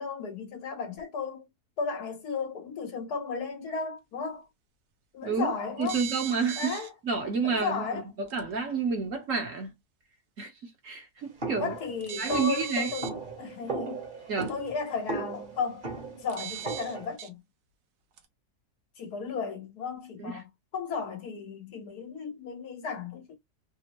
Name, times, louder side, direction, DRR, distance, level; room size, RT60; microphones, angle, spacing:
voice 1, 0.0-1.5 1.8-4.5 5.1-6.0 6.6-6.9 7.4-8.1 11.5-13.1 13.4-14.0 14.5-15.9 16.2-17.4 19.0-23.4, left 5 dB, 75° left, 1.5 m, -34 dB
voice 2, 5.2-5.5 5.8-6.8 7.0-9.8 10.4-11.7 12.2-12.9 14.3-14.5 20.2-20.4, right 5 dB, 55° right, 1.3 m, -30 dB
sound 1, 5.8-6.9 8.3-8.4 12.0-13.1 14.4-14.5 16.3-17.3 18.2-18.3, right 11 dB, 75° right, 1.2 m, -38 dB
sound 2, 11.4-17.2, right 3 dB, 35° right, 1.1 m, -37 dB
3.5 x 2.0 x 2.9 m
omnidirectional pair, 1.7 m